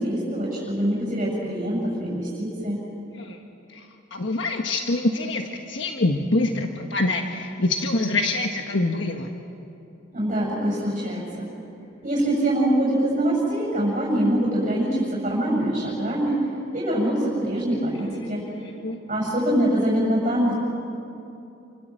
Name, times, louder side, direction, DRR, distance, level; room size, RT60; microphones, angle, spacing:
voice 1, 0.0-2.8 10.1-11.5 12.0-16.4 16.7-18.4 19.1-20.5, right 1 dB, 40° right, -4 dB, 7.5 m, -24 dB
voice 2, 4.1-9.3 18.4-19.0, left 2 dB, 65° left, 3 dB, 1.5 m, -25 dB
29.0 x 26.5 x 7.7 m, 2.8 s
head